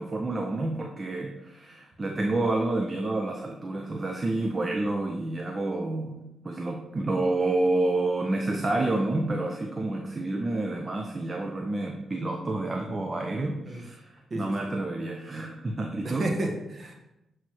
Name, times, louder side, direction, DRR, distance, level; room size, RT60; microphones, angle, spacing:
voice 1, 0.0-16.3, right 2 dB, 35° right, 3 dB, 0.6 m, -29 dB
voice 2, 14.3-14.7 16.0-16.9, right 1 dB, 50° right, 1 dB, 1.4 m, -32 dB
7.6 x 3.2 x 4.5 m, 0.94 s
supercardioid pair, 55°, 0 cm